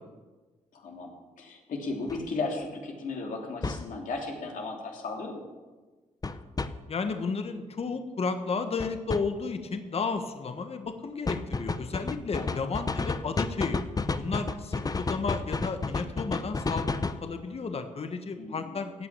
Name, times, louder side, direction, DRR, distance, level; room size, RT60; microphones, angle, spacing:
voice 1, 0.7-1.1 1.4-5.4 12.3-12.6 18.4-18.9, left 3 dB, 75° left, 1 dB, 2.9 m, -35 dB
sound 1, 2.1-2.2 3.6-3.9 6.2-6.7 8.8-9.2 11.3-17.2, left 3 dB, 25° left, 0.8 m, -30 dB
voice 2, 6.9-13.8 14.1-16.9 17.2-19.1, left 4 dB, 45° left, 7 dB, 1.3 m, -33 dB
16.0 x 5.9 x 8.8 m, 1.3 s
cardioid pair, 65°, 14 cm